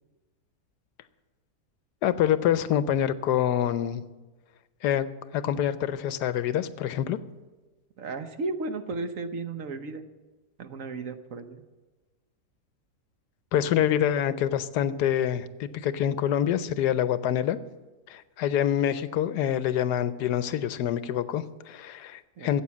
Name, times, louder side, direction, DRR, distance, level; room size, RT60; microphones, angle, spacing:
voice 1, 2.0-4.0 4.8-5.1 5.3-7.2 13.5-17.6 18.1-22.6, left 10 dB, 80° left, 14 dB, 1.3 m, -26 dB
voice 2, 8.0-10.0 10.6-11.6 22.4-22.6, right 3 dB, 60° right, 8 dB, 1.2 m, -34 dB
14.0 x 8.4 x 8.4 m, 1.2 s
omnidirectional pair, 1.7 m